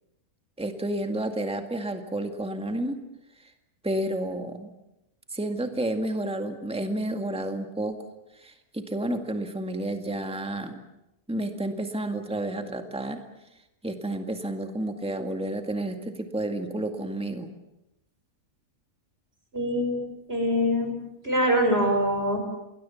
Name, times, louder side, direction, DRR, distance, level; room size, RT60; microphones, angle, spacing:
voice 1, 0.6-3.0 3.8-4.7 5.3-8.0 8.3-10.8 11.3-13.2 13.8-17.5, right 1 dB, 5° right, 5 dB, 2.0 m, -30 dB
voice 2, 19.5-20.0 20.3-21.0 21.2-22.4, equal, 40° right, 4 dB, 6.0 m, -24 dB
29.0 x 21.0 x 7.2 m, 0.90 s
omnidirectional pair, 1.5 m